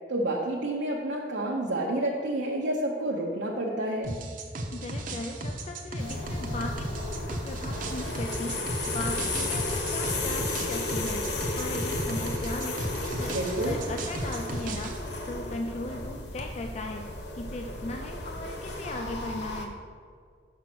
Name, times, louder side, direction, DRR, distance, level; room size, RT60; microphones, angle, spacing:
voice 1, 0.1-4.2 13.2-13.8, right 1 dB, 75° right, -4 dB, 0.8 m, -29 dB
sound 1, 4.0-15.0, right 1 dB, 45° right, 0.7 m, -35 dB
voice 2, 4.7-8.6 8.9-11.2 11.5-17.1 17.3-19.8, left 2 dB, 35° left, 4 dB, 0.4 m, -38 dB
sound 2, 6.0-19.6, left 2 dB, 65° left, 0.9 m, -34 dB
6.3 x 5.2 x 6.0 m, 2.1 s
head